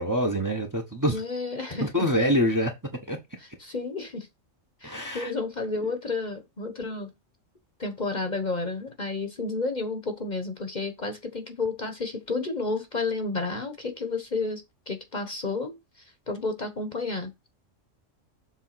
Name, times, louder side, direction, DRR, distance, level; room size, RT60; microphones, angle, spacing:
voice 1, 0.0-1.2 1.8-2.7 3.1-3.2 4.8-5.3, equal, 15° right, 1.1 m, -25 dB
voice 2, 1.1-1.9 3.4-4.3 4.8-7.1 7.8-17.3, left 3 dB, 35° left, 1.2 m, -31 dB
7.4 x 3.5 x 5.8 m
omnidirectional pair, 1.3 m